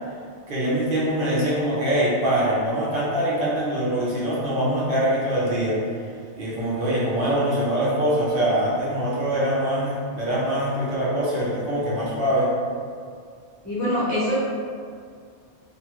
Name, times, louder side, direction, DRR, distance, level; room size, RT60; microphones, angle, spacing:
voice 1, 0.5-5.8 6.4-12.5, right 1 dB, 55° right, -7 dB, 0.8 m, -23 dB
voice 2, 13.6-14.3, left 1 dB, 15° left, -11 dB, 0.8 m, -24 dB
2.7 x 2.3 x 2.9 m, 2.2 s
omnidirectional pair, 1.1 m